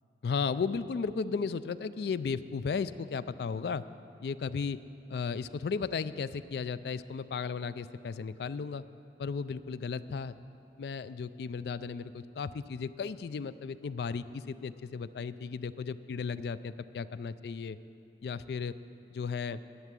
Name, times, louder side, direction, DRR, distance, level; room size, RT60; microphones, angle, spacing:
voice 1, 0.2-3.8 4.2-4.8 5.1-8.8 9.2-10.4 10.8-17.8 18.2-18.7 19.1-19.6, left 5 dB, 60° left, 15 dB, 0.3 m, -35 dB
11.0 x 8.4 x 7.5 m, 2.8 s
head